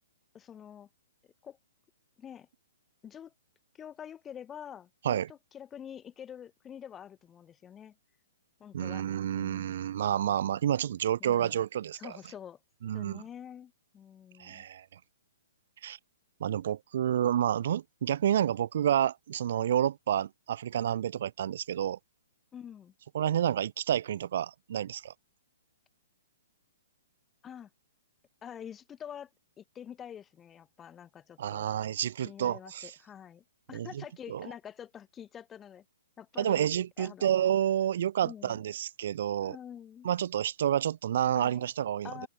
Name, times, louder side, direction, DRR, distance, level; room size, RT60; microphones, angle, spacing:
voice 1, 0.3-0.9 1.4-1.6 2.2-2.5 3.0-3.3 3.7-8.0 8.6-9.1 9.3-9.8 11.2-11.6 11.9-12.6 12.9-14.7 22.5-22.9 27.4-27.7 28.4-29.3 29.6-31.7 32.2-35.8 36.2-36.7 37.0-37.3 38.2-38.6 39.4-40.1 41.3-41.7 42.0-42.3, left 9 dB, 20° left, 4.2 m, -46 dB
voice 2, 8.7-12.1 12.8-13.2 14.4-14.9 15.8-16.0 16.4-22.0 23.1-25.1 31.4-32.9 33.7-34.0 34.3-34.5 36.4-39.6 40.0-42.3, right 10 dB, 55° right, 2.3 m, -29 dB
open air
figure-of-eight pair, 120°, 0 cm